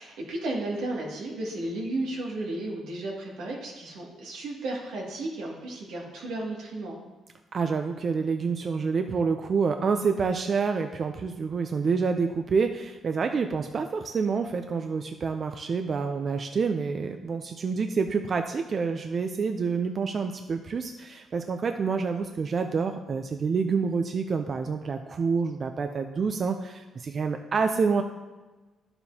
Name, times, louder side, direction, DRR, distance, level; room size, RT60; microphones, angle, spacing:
voice 1, 0.0-7.0, right 2 dB, 90° right, -3 dB, 2.2 m, -33 dB
voice 2, 7.5-28.0, right 5 dB, 45° right, 6 dB, 0.5 m, -27 dB
11.5 x 6.9 x 2.8 m, 1.2 s
cardioid pair, 90°, 0 cm